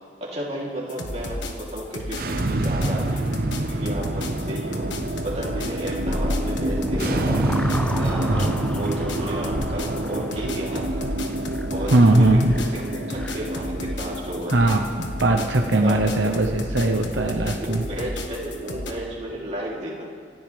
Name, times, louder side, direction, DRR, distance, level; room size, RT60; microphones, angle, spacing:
voice 1, 0.2-3.2 3.7-4.9 5.2-7.4 8.0-11.1 11.7-14.8 15.8-16.0 16.9-20.2, right 1 dB, 35° right, -5 dB, 3.3 m, -33 dB
sound 1, 0.9-18.9, left 1 dB, 80° left, 1.5 m, -33 dB
sound 2, 2.1-17.1, right 2 dB, 50° right, 0.7 m, -28 dB
sound 3, 6.1-13.6, left 1 dB, 5° left, 0.3 m, -32 dB
voice 2, 11.9-12.5 14.5-17.8, right 2 dB, 80° right, 3 dB, 1.0 m, -19 dB
27.0 x 12.0 x 3.5 m, 2.3 s
head